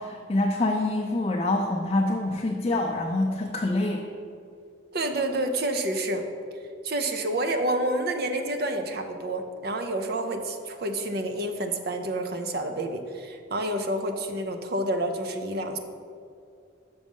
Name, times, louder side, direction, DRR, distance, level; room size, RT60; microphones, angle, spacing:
voice 1, 0.0-4.1, left 2 dB, 30° left, -1 dB, 0.5 m, -26 dB
voice 2, 4.9-6.2 6.8-15.8, right 1 dB, 50° right, 6 dB, 0.6 m, -29 dB
6.3 x 6.2 x 5.4 m, 2.4 s
head